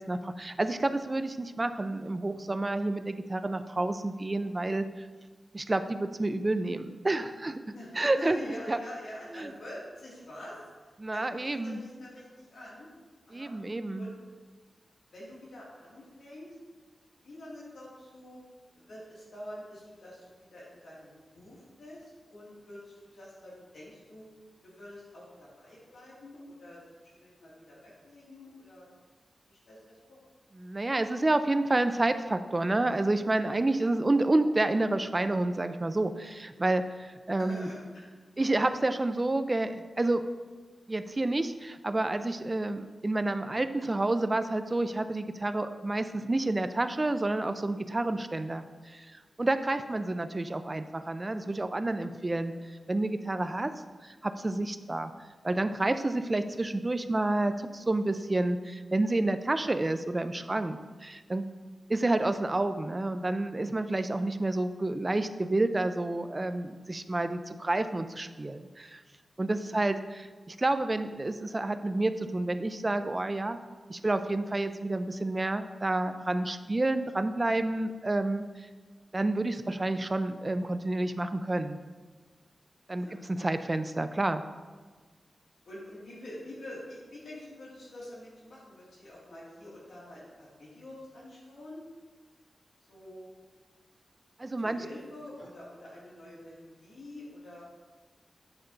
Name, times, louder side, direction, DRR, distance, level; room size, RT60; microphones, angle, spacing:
voice 1, 0.0-5.1 5.5-8.4 8.7-8.8 9.3-9.5 11.0-11.8 13.3-14.1 30.5-37.7 38.4-40.2 40.9-53.7 54.0-55.1 55.4-61.4 61.9-69.0 69.4-73.6 73.9-78.7 79.1-81.8 82.9-84.4 94.4-94.8, right 2 dB, 25° right, 10 dB, 0.4 m, -29 dB
voice 2, 7.7-12.9 13.3-13.5 14.0-14.1 15.1-16.6 17.2-18.4 18.7-24.3 24.6-26.8 27.1-28.9 29.5-30.2 37.4-38.0 49.9-50.0 52.5-52.6 59.6-59.8 61.9-62.0 69.6-69.8 82.9-83.5 85.6-91.8 92.9-93.3 94.6-97.6, left 1 dB, 70° left, -6 dB, 2.2 m, -46 dB
8.8 x 4.2 x 3.9 m, 1.4 s
wide cardioid pair, 130°, 0 cm